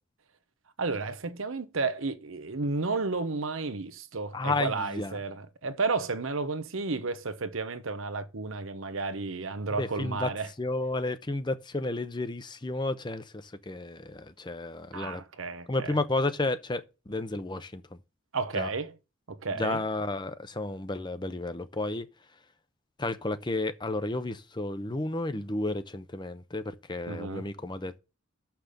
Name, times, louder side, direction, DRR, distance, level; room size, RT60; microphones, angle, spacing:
voice 1, 0.8-10.5 14.9-16.0 18.3-18.9 19.3-19.8 27.1-27.5, right 3 dB, 70° right, 0.9 m, -32 dB
voice 2, 4.3-5.2 9.8-10.3 10.6-15.2 15.7-17.8 18.5-18.7 19.6-22.1 23.0-28.0, left 2 dB, 20° left, 0.7 m, -32 dB
6.7 x 5.8 x 6.7 m
head